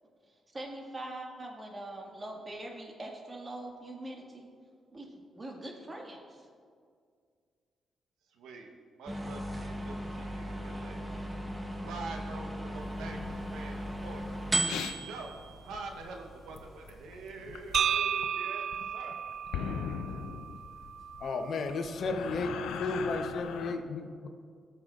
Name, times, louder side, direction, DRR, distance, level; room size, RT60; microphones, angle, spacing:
voice 1, 0.3-4.5 4.9-6.5, right 1 dB, 30° right, 0 dB, 1.8 m, -43 dB
voice 2, 8.3-8.7 9.0-11.0 11.8-14.4 15.0-15.3 15.6-18.6 18.9-19.2, right 3 dB, 90° right, 2 dB, 1.0 m, -45 dB
sound 1, 9.1-17.9, right 1 dB, 15° right, 1.1 m, -37 dB
sound 2, 12.8-15.0 15.4-15.5 15.7-16.1 16.4-17.9 18.2-18.3 18.7-23.8, left 7 dB, 85° left, 0.5 m, -40 dB
sound 3, 17.7-21.8, right 8 dB, 70° right, 0.3 m, -34 dB
voice 3, 21.2-22.5 22.8-24.3, left 3 dB, 65° left, 6 dB, 0.9 m, -33 dB
17.0 x 6.8 x 2.5 m, 2.1 s
cardioid pair, 70°, 0 cm